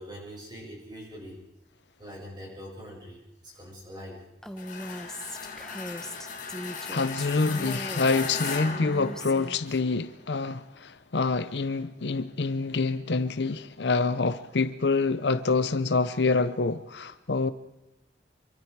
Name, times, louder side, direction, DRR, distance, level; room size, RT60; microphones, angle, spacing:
voice 1, 0.0-1.4 2.0-4.2, equal, 25° right, 6.7 m, -43 dB
Female speech woman speaking, 4.4-9.8, equal, 5° left, 0.9 m, -39 dB
sound 1, 4.6-9.8, left 5 dB, 45° left, 2.4 m, -37 dB
voice 2, 6.9-17.5, left 3 dB, 70° left, 0.7 m, -26 dB
26.5 x 23.5 x 4.7 m
head